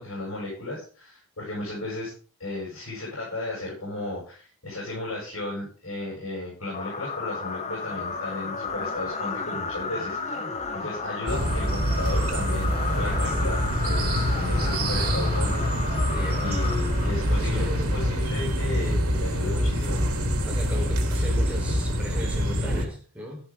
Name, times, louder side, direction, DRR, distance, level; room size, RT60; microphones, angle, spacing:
voice 1, 0.0-2.1 2.4-15.5 16.0-20.0 21.1-21.3, left 2 dB, 70° left, -6 dB, 7.9 m, -35 dB
sound 1, 6.7-17.5, left 4 dB, 30° left, 1.2 m, -33 dB
sound 2, 11.3-22.8, equal, 85° right, 3.0 m, -25 dB
voice 2, 16.1-16.7 17.4-18.3 20.4-23.4, equal, 5° right, -1 dB, 4.3 m, -37 dB
13.5 x 11.5 x 3.8 m, 0.38 s
head